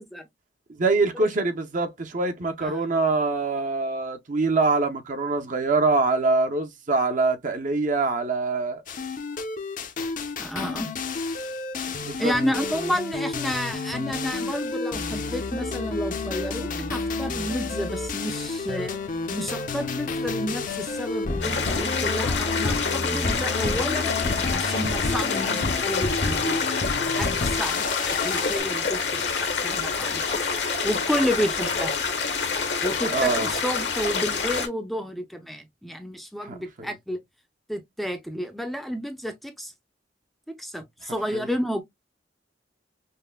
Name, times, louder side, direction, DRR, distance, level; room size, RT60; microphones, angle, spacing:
voice 1, 0.7-8.8 12.0-12.3 33.1-33.5 36.4-36.9 41.3-41.5, right 3 dB, 45° right, 0.7 m, -24 dB
sound 1, 8.9-28.6, left 3 dB, 50° left, 0.6 m, -30 dB
voice 2, 10.4-10.9 12.2-19.0 19.3-24.1 24.5-26.6 27.0-27.9 28.1-30.5 30.8-31.9 32.8-37.2 37.7-39.7 40.5-41.8, equal, ahead, 0.5 m, -31 dB
sound 2, 21.4-34.7, left 5 dB, 70° left, 1.0 m, -27 dB
5.4 x 2.1 x 2.2 m
head